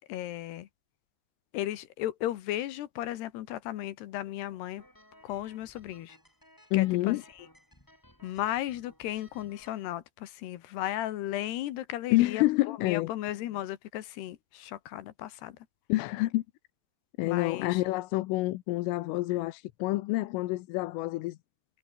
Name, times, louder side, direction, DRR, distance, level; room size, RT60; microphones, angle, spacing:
voice 1, 0.1-0.7 1.5-4.8 5.2-6.2 6.7-7.5 8.2-15.6 17.2-17.8, left 13 dB, 70° left, 3.0 m, -35 dB
sound 1, 4.8-9.9, left 1 dB, 5° left, 5.1 m, -59 dB
voice 2, 6.7-7.2 12.1-13.1 15.9-16.4 17.2-21.4, left 19 dB, 90° left, 3.5 m, -28 dB
omnidirectional pair, 5.6 m